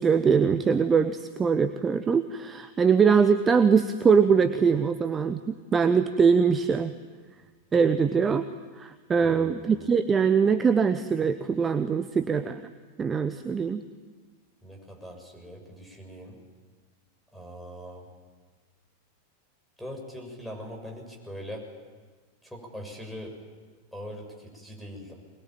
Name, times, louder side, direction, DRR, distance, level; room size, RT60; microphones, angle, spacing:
voice 1, 0.0-6.9 7.7-8.5 8.8-12.7 13.0-13.8, right 6 dB, 20° right, 11 dB, 1.0 m, -22 dB
voice 2, 9.2-9.9 14.6-16.4 17.3-18.0 19.8-21.6 22.4-23.3 23.9-25.2, equal, 5° left, 2 dB, 6.8 m, -41 dB
23.5 x 21.5 x 9.1 m, 1.4 s
figure-of-eight pair, 90°, 0 cm